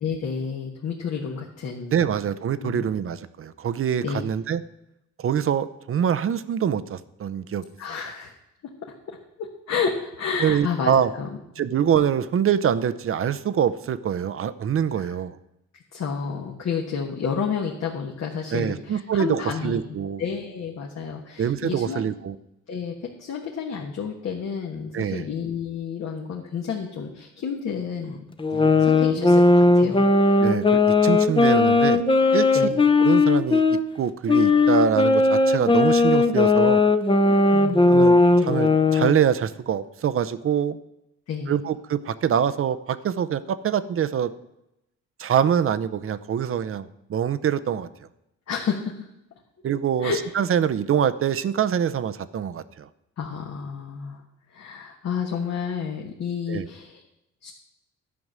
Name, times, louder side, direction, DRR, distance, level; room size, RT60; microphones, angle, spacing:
voice 1, 0.0-2.1 2.6-2.9 4.0-4.2 7.8-8.3 8.8-11.7 14.9-15.1 15.7-19.8 20.2-22.0 22.7-28.2 28.5-30.1 32.5-32.8 37.3-38.3 41.3-41.7 48.5-49.1 50.0-50.2 53.2-54.2 54.5-57.0 57.4-57.5, left 6 dB, 60° left, 0 dB, 1.3 m, -31 dB
voice 2, 1.9-4.6 5.2-7.6 10.4-11.1 11.6-15.4 18.5-20.2 21.4-22.3 24.9-25.2 28.5-28.9 30.4-32.0 32.3-32.5 33.0-33.7 33.9-36.8 37.9-40.8 41.5-44.3 45.2-47.9 49.6-52.9 56.5-56.7, right 8 dB, 45° right, 15 dB, 0.7 m, -24 dB
sound 1, 28.4-33.8 34.3-39.2, left 3 dB, 15° left, 0.7 m, -18 dB
11.0 x 5.3 x 7.4 m, 0.86 s
cardioid pair, 90°, 30 cm